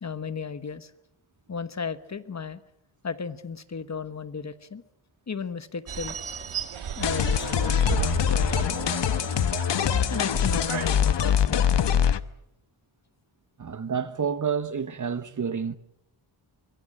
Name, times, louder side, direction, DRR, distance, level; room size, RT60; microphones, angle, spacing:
voice 1, 0.0-0.9 1.5-2.6 3.0-4.8 5.3-6.2 7.0-9.1 10.1-12.0, left 5 dB, 35° left, 1.2 m, -35 dB
sound 1, 5.9-10.9, right 7 dB, 85° right, 2.2 m, -33 dB
sound 2, 7.0-12.2, left 9 dB, 60° left, 1.0 m, -24 dB
voice 2, 13.6-15.8, right 6 dB, 40° right, 1.1 m, -29 dB
24.5 x 22.5 x 8.6 m
wide cardioid pair, 150°, 48 cm